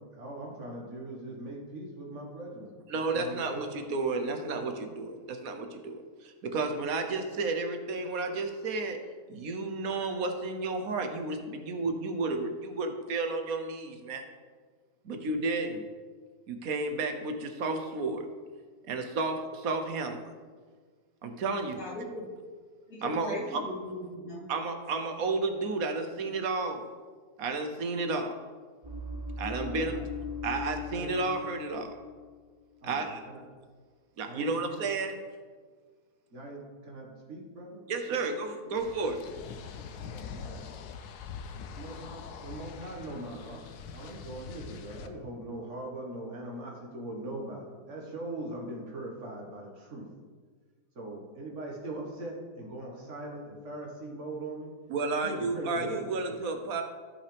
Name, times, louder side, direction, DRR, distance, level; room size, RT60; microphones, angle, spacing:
voice 1, 0.0-3.7 4.2-4.6 29.6-30.0 30.9-31.2 32.8-33.5 34.3-34.8 36.3-37.8 38.1-38.2 38.6-39.1 39.3-40.7 41.8-43.7 43.9-50.1 51.0-54.7 55.2-56.3, right 1 dB, 50° right, -1 dB, 1.9 m, -41 dB
voice 2, 2.9-9.0 9.3-14.2 15.0-15.9 16.5-18.2 18.9-20.2 21.2-21.8 23.0-23.6 24.5-26.8 27.4-28.3 29.4-30.0 30.4-31.9 32.8-33.2 34.2-35.2 37.9-39.2 54.9-56.8, right 3 dB, 70° right, 6 dB, 1.3 m, -32 dB
voice 3, 21.8-22.3 22.9-24.4, equal, 60° left, -8 dB, 2.8 m, -38 dB
sound 1, 28.8-32.3 32.6-32.9, left 4 dB, 25° right, 0.5 m, -39 dB
sound 2, 38.8-45.1, left 6 dB, 85° left, 1.2 m, -44 dB
14.5 x 5.5 x 3.5 m, 1.6 s
omnidirectional pair, 1.6 m